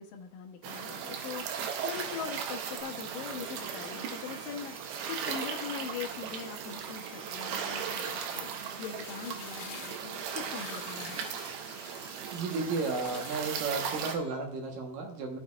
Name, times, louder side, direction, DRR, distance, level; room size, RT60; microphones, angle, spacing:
voice 1, 0.0-1.5 1.8-8.5 8.8-11.3, left 7 dB, 70° left, 3 dB, 2.3 m, -41 dB
sound 1, 0.6-14.2, right 7 dB, 85° right, 2.8 m, -37 dB
sound 2, 2.8-14.3, equal, 40° right, 4.9 m, -56 dB
sound 3, 7.6-13.7, left 10 dB, 90° left, 2.7 m, -50 dB
voice 2, 12.3-15.4, right 4 dB, 65° right, 2 dB, 2.5 m, -33 dB
14.5 x 6.3 x 2.4 m, 0.71 s
omnidirectional pair, 4.6 m